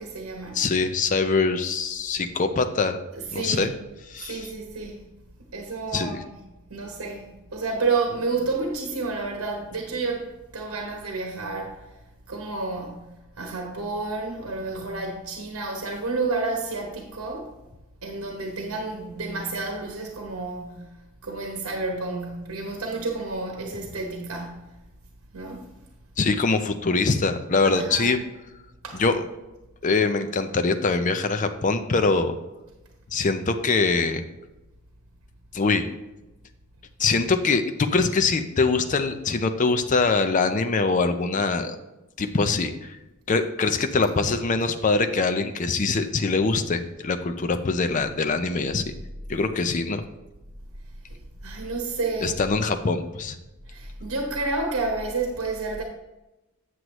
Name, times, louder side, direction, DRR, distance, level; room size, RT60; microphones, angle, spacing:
voice 1, 0.0-0.7 3.1-3.7 4.2-5.0 5.5-6.4 6.7-10.3 10.5-11.9 12.3-13.1 13.4-17.5 18.0-24.6 25.3-25.7 27.6-28.2 28.8-29.0 51.1-52.4 53.7-55.8, right 3 dB, 75° right, 1.0 m, -30 dB
voice 2, 0.5-3.0 3.3-3.7 4.1-4.5 5.9-6.2 26.2-28.2 28.9-29.2 29.8-32.3 33.1-34.2 35.5-35.9 37.0-41.8 42.2-43.0 43.3-48.8 49.3-50.0 52.2-53.4, left 4 dB, 35° left, 0.5 m, -23 dB
7.9 x 7.7 x 3.0 m
head